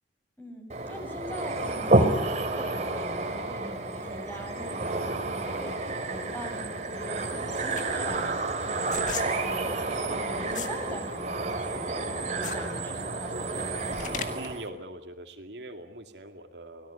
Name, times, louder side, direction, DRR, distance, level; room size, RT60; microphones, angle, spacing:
voice 1, 0.4-8.3 8.7-11.9 12.2-14.3, equal, 10° left, 3 dB, 6.3 m, -42 dB
sound 1, 0.7-14.7, right 2 dB, 40° right, 2.7 m, -30 dB
sound 2, 7.2-10.8 11.2-14.6, left 6 dB, 45° left, 1.9 m, -39 dB
voice 2, 14.3-16.9, right 1 dB, 75° right, 5 dB, 2.3 m, -42 dB
25.0 x 18.0 x 9.9 m, 0.90 s
head